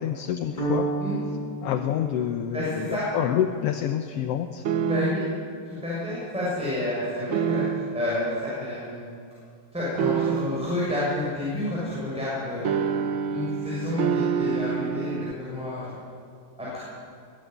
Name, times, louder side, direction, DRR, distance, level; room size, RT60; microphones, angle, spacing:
voice 1, 0.0-4.7, left 10 dB, 70° left, 7 dB, 1.6 m, -28 dB
sound 1, 0.6-2.9, right 3 dB, 30° left, 5.3 m, -31 dB
voice 2, 2.5-3.0 4.8-5.2 5.7-9.1 9.7-12.9 13.3-16.0 16.6-16.8, left 1 dB, ahead, -8 dB, 6.4 m, -30 dB
sound 2, 4.6-5.4 7.3-8.1 10.0-10.8 12.6-15.3, right 7 dB, 80° right, 1.1 m, -27 dB
22.5 x 15.0 x 9.4 m, 2.4 s
omnidirectional pair, 3.4 m